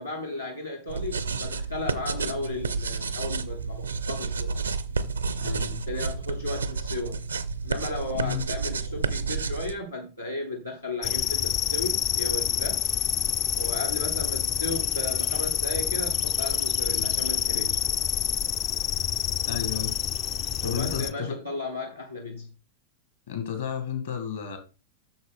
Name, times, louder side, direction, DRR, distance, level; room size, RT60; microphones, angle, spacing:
voice 1, 0.0-4.5 5.9-7.2 7.6-12.8 13.5-17.8 20.6-22.5, left 2 dB, 85° left, 1.3 m, -35 dB
sound 1, 0.9-9.7, right 4 dB, 75° right, 0.6 m, -30 dB
voice 2, 5.4-5.8 8.1-8.4 19.5-20.2 20.6-21.4 23.3-24.6, left 8 dB, 60° left, 2.0 m, -32 dB
sound 2, 11.0-21.1, left 9 dB, 30° left, 0.5 m, -27 dB
8.0 x 6.6 x 3.6 m
figure-of-eight pair, 90°, 0 cm